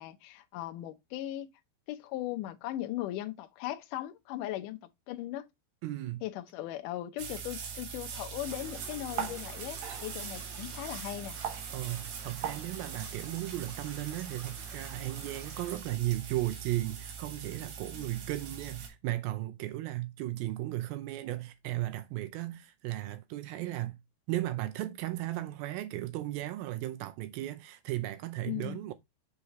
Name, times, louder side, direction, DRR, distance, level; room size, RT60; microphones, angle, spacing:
voice 1, 0.0-1.5 1.9-4.8 5.1-5.5 6.2-11.4 17.9-18.3 28.4-28.8, left 14 dB, 90° left, 1.8 m, -38 dB
voice 2, 5.8-6.2 11.7-24.0 24.3-28.9, right 16 dB, 85° right, 2.1 m, -35 dB
sound 1, 7.2-18.9, right 7 dB, 65° right, 2.8 m, -41 dB
sound 2, 8.4-15.8, right 3 dB, 40° right, 1.7 m, -52 dB
6.7 x 4.9 x 3.0 m
omnidirectional pair, 4.8 m